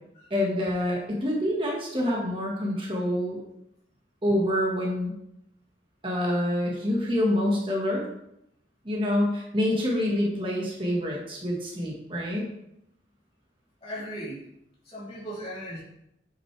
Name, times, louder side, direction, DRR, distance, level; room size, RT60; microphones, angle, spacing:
voice 1, 0.3-3.4 4.2-5.1 6.0-8.1 8.8-12.5, left 1 dB, 30° right, -3 dB, 1.5 m, -26 dB
voice 2, 13.8-14.4 14.8-15.8, equal, 35° left, -7 dB, 3.1 m, -37 dB
8.9 x 6.5 x 3.3 m, 0.78 s
head